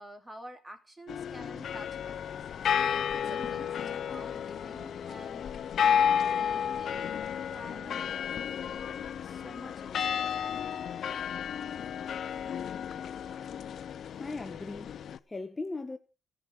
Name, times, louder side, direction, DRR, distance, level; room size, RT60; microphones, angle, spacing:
voice 1, 0.0-2.5 2.8-5.4 5.8-7.2 7.5-10.3, equal, 15° right, 2.9 m, -49 dB
sound 1, 1.1-15.2, left 8 dB, 60° left, 0.7 m, -32 dB
voice 2, 14.2-16.0, left 3 dB, 20° left, 0.9 m, -39 dB
14.0 x 5.9 x 8.6 m
cardioid pair, 90°, 0 cm